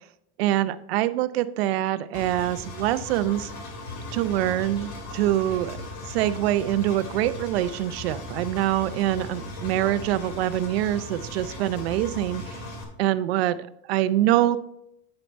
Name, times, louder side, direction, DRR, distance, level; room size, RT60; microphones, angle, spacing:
voice 1, 0.4-3.5 4.1-5.8 6.1-12.7 13.0-13.6 13.9-14.6, right 13 dB, 90° right, 14 dB, 0.7 m, -24 dB
Engine, 2.1-12.8, left 2 dB, 60° left, 2.4 m, -38 dB
9.2 x 6.7 x 4.1 m, 0.77 s
supercardioid pair, 145°, 30 cm